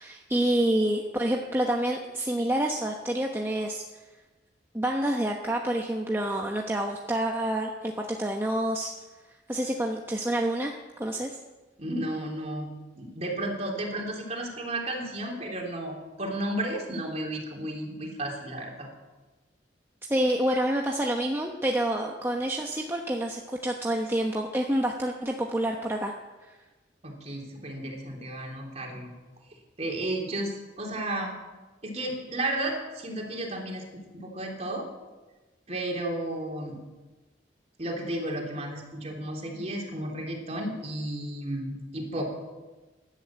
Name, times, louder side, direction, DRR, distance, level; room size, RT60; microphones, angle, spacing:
voice 1, 0.0-3.8 4.7-8.9 9.5-11.4 20.1-26.1, right 1 dB, 15° right, 1 dB, 1.0 m, -28 dB
voice 2, 11.8-18.9 27.0-29.1 29.8-31.4 31.8-33.8 34.1-34.8 35.7-36.8 37.8-42.3, right 1 dB, 35° right, 0 dB, 3.3 m, -33 dB
13.5 x 11.5 x 8.8 m, 1.2 s
head